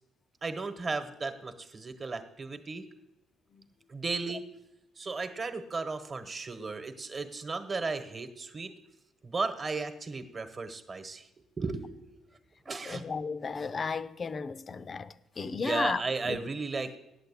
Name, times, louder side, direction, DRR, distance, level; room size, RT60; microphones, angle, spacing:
voice 1, 0.4-2.8 3.9-4.4 5.0-8.7 9.2-11.3 11.6-12.1 12.6-13.0 15.6-16.9, right 4 dB, 35° right, 1.1 m, -35 dB
voice 2, 12.8-16.0 16.3-16.4, left 5 dB, 40° left, 0.5 m, -34 dB
8.7 x 8.0 x 8.3 m
cardioid pair, 90°, 0 cm